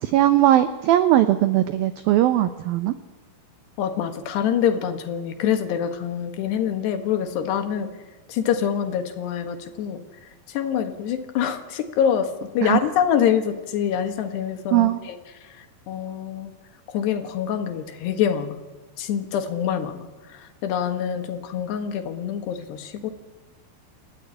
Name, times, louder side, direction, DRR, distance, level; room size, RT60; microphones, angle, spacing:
voice 1, 0.0-2.9 12.6-12.8 14.7-15.0, right 13 dB, 90° right, 11 dB, 2.0 m, -19 dB
voice 2, 3.8-7.9 8.3-10.0 10.5-16.5 16.9-18.6 19.0-23.1, left 8 dB, 70° left, 7 dB, 3.5 m, -25 dB
28.0 x 14.0 x 9.7 m, 1.3 s
omnidirectional pair, 5.3 m